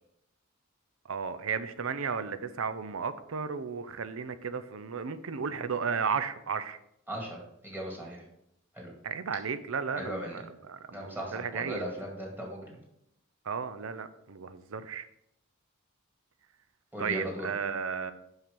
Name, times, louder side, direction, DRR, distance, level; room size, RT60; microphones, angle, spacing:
voice 1, 1.1-6.8 9.0-11.8 13.4-15.1 17.0-18.1, right 6 dB, 75° right, 13 dB, 0.6 m, -34 dB
voice 2, 7.1-8.2 8.7-8.9 9.9-10.4 10.9-12.8 16.9-17.5, equal, 10° right, -1 dB, 2.0 m, -38 dB
5.8 x 5.7 x 5.3 m, 0.77 s
head